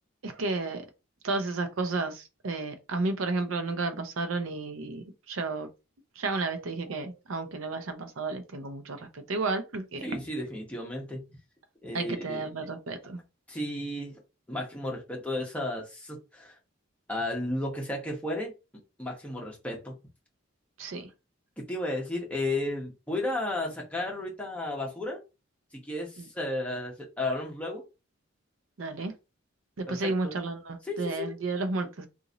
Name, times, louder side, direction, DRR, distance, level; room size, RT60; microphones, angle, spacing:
voice 1, 0.2-0.8 1.2-5.7 6.2-10.2 11.9-13.2 20.8-21.1 26.2-26.3 28.8-29.1 29.9-32.1, right 3 dB, 80° right, 0.6 m, -32 dB
voice 2, 10.0-11.2 11.8-12.5 13.5-14.2 14.5-16.5 17.1-18.5 19.0-19.9 21.6-25.2 25.8-27.8 29.9-30.3 30.9-31.3, left 1 dB, 5° left, 1.0 m, -33 dB
2.9 x 2.5 x 3.8 m
head